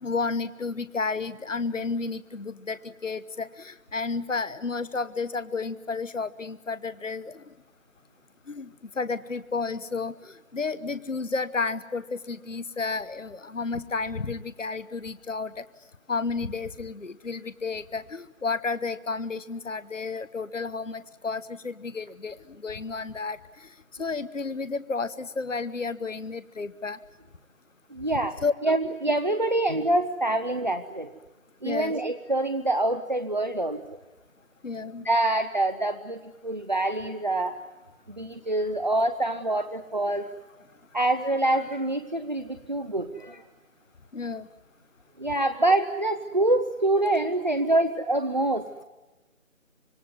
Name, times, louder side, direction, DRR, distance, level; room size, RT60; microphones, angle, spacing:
voice 1, 0.0-2.8 3.0-7.4 8.5-8.7 9.0-15.5 16.1-22.4 22.6-23.4 24.0-27.0 28.4-28.5 31.6-31.9 34.6-35.1 44.1-44.5, left 4 dB, 65° left, 15 dB, 1.1 m, -31 dB
voice 2, 27.9-28.4 28.6-31.1 31.6-33.8 35.0-37.6 38.1-40.3 40.9-43.4 45.2-48.7, right 2 dB, 35° right, 7 dB, 0.9 m, -25 dB
26.0 x 22.5 x 9.6 m, 1.1 s
figure-of-eight pair, 165°, 41 cm